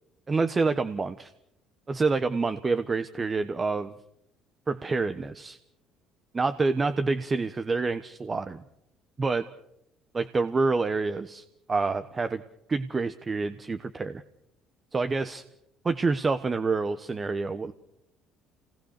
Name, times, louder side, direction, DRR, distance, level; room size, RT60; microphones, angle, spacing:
voice 1, 0.3-1.3 1.9-3.9 4.7-5.6 6.3-8.6 9.2-9.5 10.1-12.4 12.7-14.2 14.9-15.4 15.8-17.7, right 4 dB, 30° right, 11 dB, 1.1 m, -27 dB
28.0 x 19.0 x 6.7 m, 0.82 s
hypercardioid pair, 65°, 0 cm